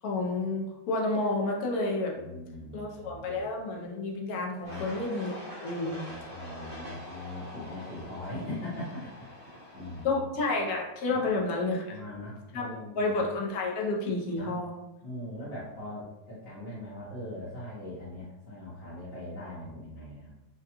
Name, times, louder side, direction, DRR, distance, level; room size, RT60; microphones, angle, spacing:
voice 1, 0.0-2.1 2.7-5.3 5.6-6.0 10.0-12.0 12.5-14.7, left 2 dB, 70° left, -1 dB, 1.0 m, -30 dB
voice 2, 2.1-3.5 4.6-4.8 5.9-10.2 11.1-11.2 11.8-13.1 14.4-14.6 15.0-20.3, left 1 dB, 45° left, -9 dB, 0.9 m, -41 dB
sound 1, 4.6-10.0, left 1 dB, 30° right, 0.6 m, -44 dB
3.4 x 2.2 x 2.8 m, 1.0 s
omnidirectional pair, 1.8 m